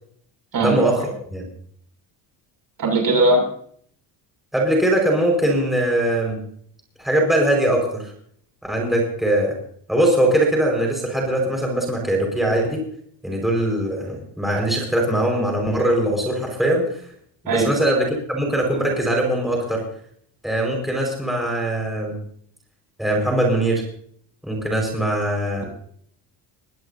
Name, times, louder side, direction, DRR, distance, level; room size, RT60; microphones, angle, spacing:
voice 1, 0.6-1.4 4.5-6.4 7.0-8.1 8.7-9.6 9.9-12.8 13.2-17.0 17.4-19.8 20.4-22.2 23.0-23.8 24.4-25.6, right 1 dB, ahead, -1 dB, 5.1 m, -21 dB
voice 2, 2.8-3.4 17.5-17.7, right 2 dB, 50° right, 3 dB, 6.7 m, -18 dB
22.5 x 17.0 x 2.8 m, 0.62 s
cardioid pair, 145°, 43 cm